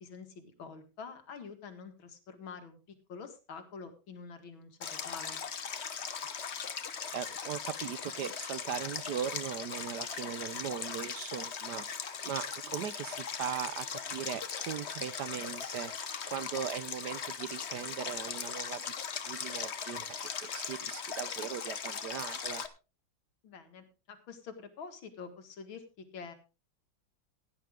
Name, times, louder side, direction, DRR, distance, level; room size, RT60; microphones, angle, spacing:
voice 1, 0.0-2.8 3.1-5.4 23.4-26.3, left 5 dB, 85° left, 7 dB, 2.6 m, -47 dB
Stream, 4.8-22.7, left 6 dB, 45° left, 1.0 m, -39 dB
voice 2, 7.1-18.8 19.3-22.7, right 9 dB, 65° right, 15 dB, 1.2 m, -39 dB
16.0 x 10.0 x 3.6 m, 0.30 s
omnidirectional pair, 2.1 m